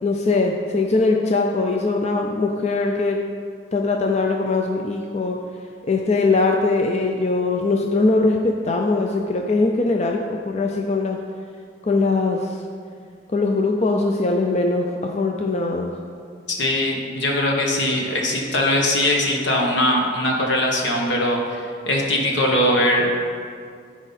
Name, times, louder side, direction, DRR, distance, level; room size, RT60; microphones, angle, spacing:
voice 1, 0.0-3.2 3.7-5.4 5.8-11.2 11.8-12.6 13.3-15.9, left 3 dB, 35° left, 2 dB, 0.4 m, -21 dB
voice 2, 16.5-23.1, left 1 dB, 75° left, -1 dB, 1.4 m, -21 dB
12.5 x 4.9 x 4.2 m, 2.2 s
head